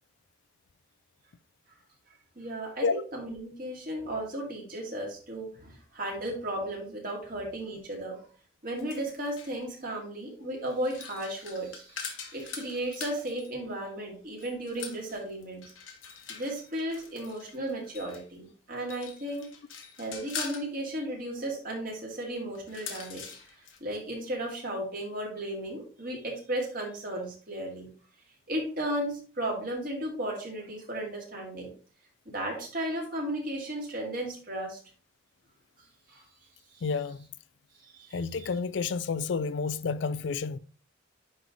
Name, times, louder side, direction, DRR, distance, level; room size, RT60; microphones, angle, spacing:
voice 1, 2.4-8.3 8.6-15.6 16.3-19.5 20.0-23.2 23.6-27.9 28.5-31.7 32.3-34.8 36.1-36.2 36.7-36.8 37.8-38.2, right 1 dB, 45° right, 2.4 m, -35 dB
sound 1, 8.8-9.6 10.7-13.5 14.4-18.3 18.8-20.7 22.6-23.8, left 6 dB, 90° left, 1.4 m, -43 dB
voice 2, 36.8-37.3 38.1-40.6, left 5 dB, 60° left, 0.4 m, -30 dB
9.8 x 3.3 x 3.9 m
head